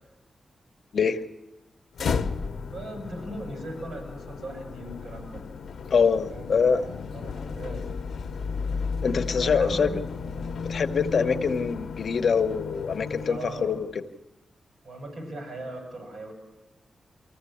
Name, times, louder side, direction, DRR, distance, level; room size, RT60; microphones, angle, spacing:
sound 1, 1.9-13.9, left 5 dB, 90° left, 0.8 m, -34 dB
voice 1, 2.6-5.4 6.3-7.9 9.4-10.0 11.2-11.4 13.3-13.8 14.8-16.3, right 2 dB, 55° right, 3 dB, 6.4 m, -39 dB
voice 2, 5.9-6.8 9.0-9.9 10.7-13.9, left 5 dB, 60° left, 10 dB, 1.0 m, -24 dB
24.5 x 15.0 x 8.6 m, 1.1 s
wide cardioid pair, 140°, 0 cm